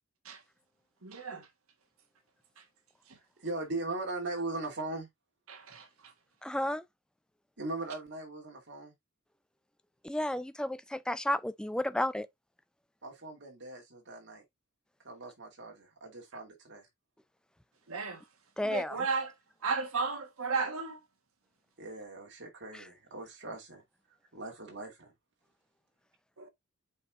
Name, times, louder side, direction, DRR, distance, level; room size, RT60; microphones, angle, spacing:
voice 1, 1.0-1.5 2.6-2.7 3.1-3.2 5.5-6.1 17.9-18.2 18.6-19.3 19.6-21.0 26.4-26.5, right 4 dB, 80° right, 1.4 m, -34 dB
voice 2, 3.4-5.1 7.6-8.9 13.0-14.4 15.0-16.9 21.8-23.8 24.3-25.1, right 2 dB, 55° right, 2.6 m, -39 dB
voice 3, 6.4-6.8 10.0-12.3 18.6-19.0 22.7-22.8, left 1 dB, 5° left, 0.4 m, -32 dB
8.1 x 4.9 x 2.5 m
head